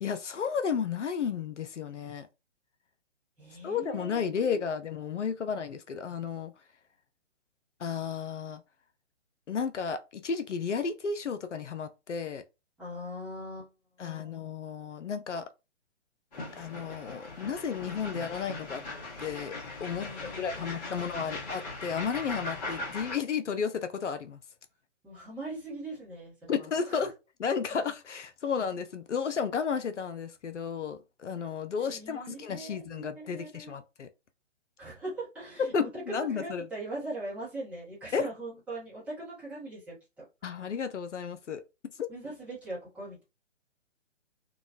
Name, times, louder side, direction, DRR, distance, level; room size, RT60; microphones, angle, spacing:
voice 1, 0.0-2.3 3.6-6.5 7.8-8.6 9.5-12.4 14.0-15.5 16.5-18.8 19.2-19.5 19.8-20.1 20.4-24.4 26.5-27.1 27.4-34.1 35.7-36.6 38.1-38.3 40.4-41.6, left 6 dB, 75° left, 0.5 m, -33 dB
voice 2, 3.4-4.6 12.8-13.7 14.0-14.3 17.8-18.7 20.0-21.4 25.0-27.0 31.8-33.7 34.8-35.9 36.3-39.9 42.1-43.2, right 1 dB, 5° right, 0.8 m, -41 dB
sound 1, 16.3-23.2, left 2 dB, 35° left, 1.0 m, -39 dB
2.9 x 2.3 x 2.4 m
figure-of-eight pair, 130°, 36 cm